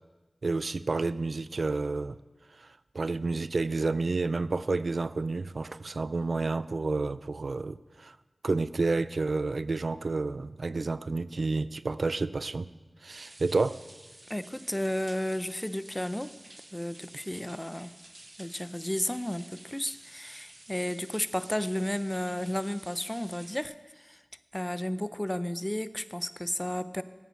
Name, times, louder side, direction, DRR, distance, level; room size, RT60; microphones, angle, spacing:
voice 1, 0.4-2.2 2.6-2.7 2.9-8.2 8.4-12.7 13.0-13.8, right 3 dB, 75° right, 16 dB, 0.4 m, -30 dB
sound 1, 13.1-23.6, right 1 dB, 40° right, 1.0 m, -51 dB
voice 2, 14.3-16.3 16.7-17.9 18.4-24.2 24.5-27.0, left 1 dB, 15° left, 14 dB, 0.6 m, -33 dB
12.5 x 7.9 x 6.5 m, 1.2 s
cardioid pair, 40°, 0 cm